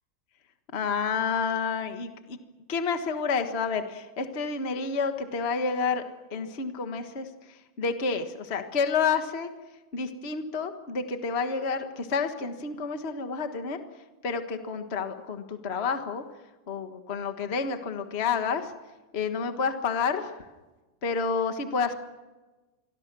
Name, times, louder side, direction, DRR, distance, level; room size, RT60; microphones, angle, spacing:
voice 1, 0.7-2.4 2.7-6.0 6.3-9.5 9.9-13.8 14.2-16.2 16.7-18.7 19.1-20.3 21.0-21.9, left 5 dB, 55° left, 7 dB, 0.7 m, -29 dB
28.0 x 22.5 x 6.2 m, 1.2 s
omnidirectional pair, 3.7 m